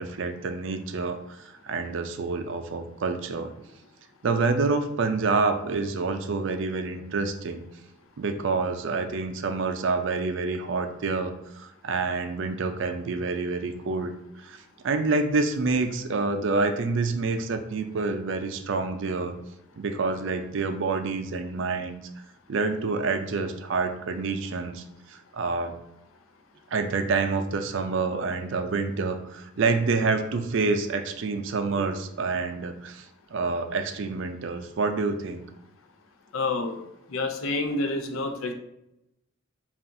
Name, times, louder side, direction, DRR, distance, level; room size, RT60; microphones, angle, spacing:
voice 1, 0.0-3.5 4.2-7.6 8.2-14.1 14.4-14.6 14.8-19.3 19.8-22.0 22.5-25.7 26.7-33.0 33.3-35.4, right 4 dB, 65° right, 7 dB, 0.4 m, -27 dB
voice 2, 36.3-36.8 37.1-38.5, left 2 dB, 85° left, 5 dB, 0.6 m, -28 dB
5.4 x 2.5 x 2.6 m, 0.84 s
head